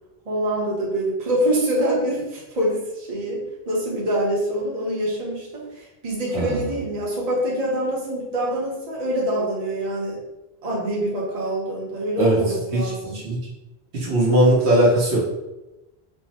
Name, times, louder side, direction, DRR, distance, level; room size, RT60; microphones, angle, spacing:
voice 1, 0.3-10.2 10.6-13.2, right 1 dB, 40° right, -5 dB, 0.9 m, -25 dB
voice 2, 12.7-13.4 13.9-15.2, right 1 dB, 75° right, -5 dB, 1.3 m, -19 dB
3.5 x 2.0 x 4.1 m, 0.99 s
omnidirectional pair, 1.1 m